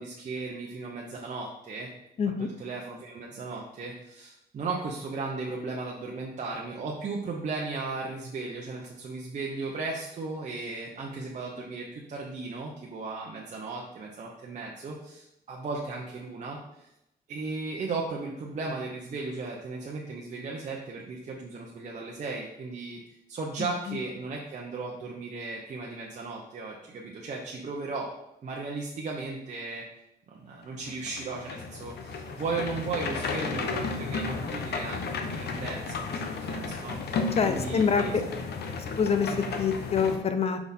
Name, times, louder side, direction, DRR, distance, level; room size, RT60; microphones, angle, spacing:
voice 1, 0.0-1.9 2.2-16.9 17.3-23.0 23.3-28.1 28.4-29.8 30.3-38.2, right 3 dB, 45° right, -2 dB, 0.9 m, -36 dB
sound 1, 30.9-40.2, left 4 dB, 70° left, 0.9 m, -33 dB
voice 2, 37.4-38.0 39.0-40.6, left 6 dB, 35° left, 8 dB, 0.7 m, -26 dB
5.9 x 4.3 x 5.4 m, 0.83 s
wide cardioid pair, 155°, 18 cm